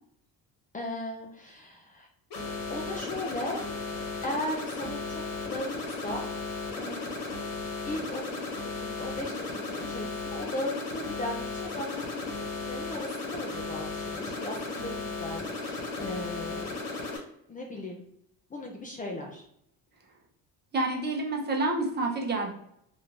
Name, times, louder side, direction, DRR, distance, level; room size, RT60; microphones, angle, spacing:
voice 1, 0.7-2.1 2.4-3.6 4.0-6.2 6.8-7.1 7.9-16.7 17.5-18.0 18.5-19.4, left 1 dB, 20° left, 0 dB, 0.5 m, -37 dB
sound 1, 2.3-17.2, left 3 dB, 60° left, 1.2 m, -35 dB
voice 2, 20.7-22.5, right 2 dB, 25° right, 0 dB, 0.7 m, -28 dB
3.4 x 2.6 x 2.8 m, 0.73 s
cardioid pair, 115°, 38 cm